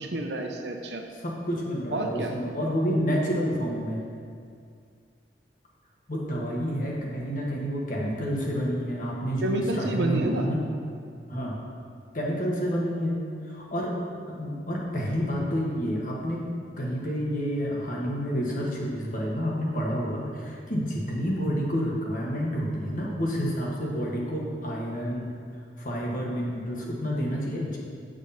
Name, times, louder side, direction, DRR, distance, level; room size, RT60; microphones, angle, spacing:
voice 1, 0.0-1.0 1.9-2.4 9.4-10.5, right 1 dB, 75° right, 3 dB, 0.9 m, -29 dB
voice 2, 1.2-4.0 6.1-10.6 11.3-11.6 12.1-13.2 13.4-13.9 14.4-16.4 16.8-25.4 25.8-27.8, equal, 50° left, -3 dB, 1.5 m, -29 dB
9.3 x 6.4 x 4.2 m, 2.2 s
head